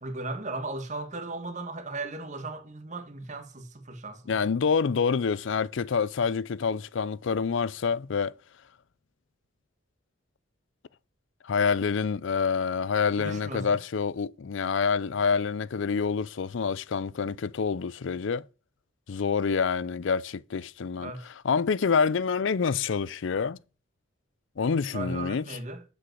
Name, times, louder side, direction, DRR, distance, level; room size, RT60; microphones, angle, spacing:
voice 1, 0.0-4.3 13.2-13.8 21.0-21.3 24.9-25.8, right 2 dB, 35° right, 1.6 m, -36 dB
voice 2, 4.3-8.3 11.4-18.4 19.1-21.1 21.4-23.6 24.6-25.6, left 5 dB, 70° left, 0.5 m, -27 dB
10.0 x 5.4 x 7.7 m
head